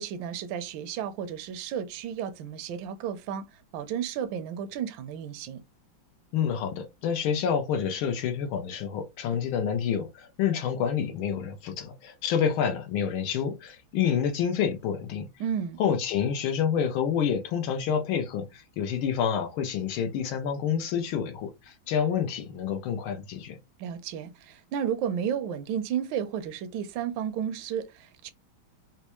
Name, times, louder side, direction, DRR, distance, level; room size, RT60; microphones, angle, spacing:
voice 1, 0.0-5.6 15.4-15.8 23.8-28.3, right 8 dB, 75° right, 1.2 m, -32 dB
voice 2, 6.3-15.3 15.8-23.6, left 8 dB, 80° left, 1.5 m, -28 dB
4.2 x 2.2 x 2.9 m
omnidirectional pair, 2.3 m